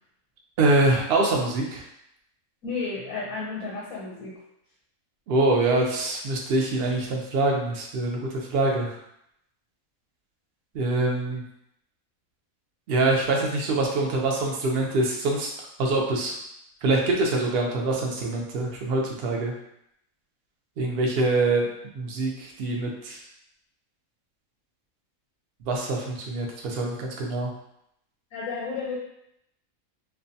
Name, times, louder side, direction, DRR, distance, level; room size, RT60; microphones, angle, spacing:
voice 1, 0.6-1.8 5.3-8.2 8.5-9.0 10.7-11.4 12.9-15.5 15.8-16.3 16.8-19.5 20.8-23.2 25.7-27.5, right 2 dB, 65° right, 0 dB, 0.6 m, -24 dB
voice 2, 2.6-4.4 28.3-29.0, left 4 dB, 80° left, -5 dB, 1.0 m, -32 dB
2.5 x 2.2 x 2.6 m, 0.77 s
omnidirectional pair, 1.5 m